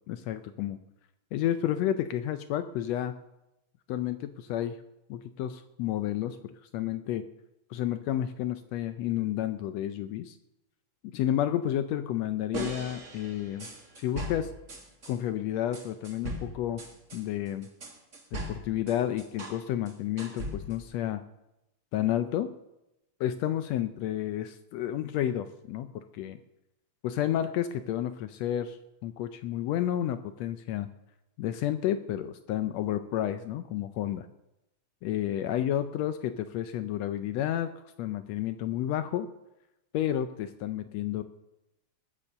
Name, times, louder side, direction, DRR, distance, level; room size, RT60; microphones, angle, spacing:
voice 1, 0.1-0.8 1.3-3.1 3.9-4.8 5.1-7.3 7.7-10.4 11.1-13.7 14.0-14.5 15.1-16.8 17.1-17.7 18.3-21.2 21.9-22.5 23.2-26.4 27.0-30.9 31.4-34.3 35.0-37.7 38.0-39.3 39.9-41.2, left 11 dB, 80° left, 10 dB, 1.6 m, -31 dB
sound 1, 12.5-15.2 15.7-19.6 19.9-20.9, right 1 dB, 30° right, 1.7 m, -39 dB
20.5 x 6.9 x 6.7 m, 0.92 s
omnidirectional pair, 3.4 m